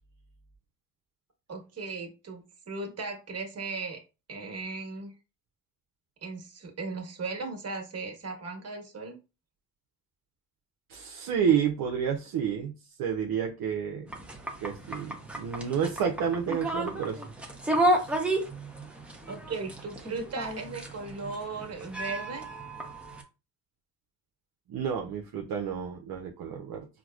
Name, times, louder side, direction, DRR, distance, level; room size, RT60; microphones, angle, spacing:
voice 1, 1.5-4.0 4.3-5.1 6.2-9.2 19.3-22.5, right 4 dB, 35° right, 2 dB, 1.3 m, -37 dB
voice 2, 10.9-12.7 13.0-14.1 14.6-17.2 17.9-18.2 24.7-26.9, right 7 dB, 55° right, 2 dB, 0.7 m, -30 dB
sound 1, 14.1-23.2, right 1 dB, 5° right, 0.7 m, -32 dB
4.6 x 2.1 x 2.3 m, 0.30 s
cardioid pair, 85°, 42 cm